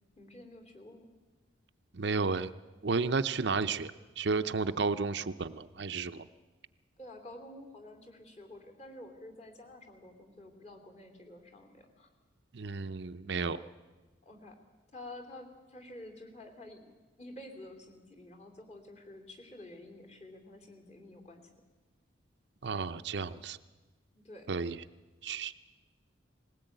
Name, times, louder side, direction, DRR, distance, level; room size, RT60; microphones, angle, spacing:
voice 1, 0.2-1.1 7.0-12.1 14.2-14.6 14.9-16.9 17.2-21.4 24.2-24.5, left 1 dB, 35° left, 3 dB, 3.0 m, -50 dB
voice 2, 1.9-2.5 2.8-6.2 12.5-13.6 22.6-23.6 24.5-24.8 25.2-25.5, right 4 dB, 60° right, 11 dB, 0.6 m, -32 dB
20.0 x 18.0 x 9.0 m, 1.2 s
head